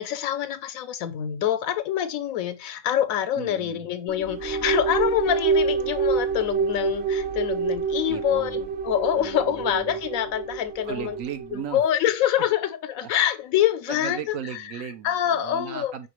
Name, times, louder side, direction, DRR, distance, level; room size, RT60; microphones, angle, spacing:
voice 1, 0.0-11.2 11.5-14.2 15.0-15.9, left 10 dB, 85° left, 1.1 m, -25 dB
voice 2, 3.3-3.9 8.1-8.7 9.1-10.0 10.8-11.8 13.0-13.1 13.9-16.1, right 8 dB, 75° right, 1.1 m, -37 dB
sound 1, 4.1-11.6, right 5 dB, 55° right, 1.0 m, -27 dB
5.1 x 3.5 x 3.0 m
omnidirectional pair, 1.4 m